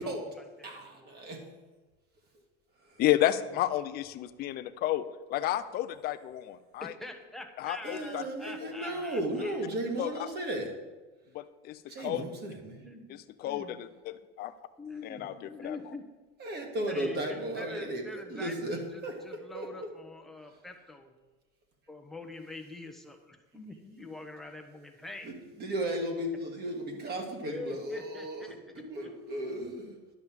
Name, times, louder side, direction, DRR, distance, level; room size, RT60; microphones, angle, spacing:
voice 1, 0.0-1.1 6.8-9.6 12.8-13.8 14.8-16.0 16.9-21.1 21.9-25.3 27.5-29.1, left 2 dB, ahead, 3 dB, 0.9 m, -45 dB
voice 2, 0.6-1.4 2.8-3.0 7.8-10.7 11.9-12.8 16.4-19.9 25.2-25.3 25.6-30.0, right 1 dB, 30° right, 2 dB, 1.7 m, -35 dB
voice 3, 3.0-5.0 5.3-6.9 7.6-8.2 8.6-8.7 10.0-10.3 11.3-12.2 13.4-14.5 15.0-15.8, left 13 dB, 30° left, 11 dB, 0.5 m, -31 dB
11.0 x 5.3 x 7.4 m, 1.2 s
supercardioid pair, 150°, 32 cm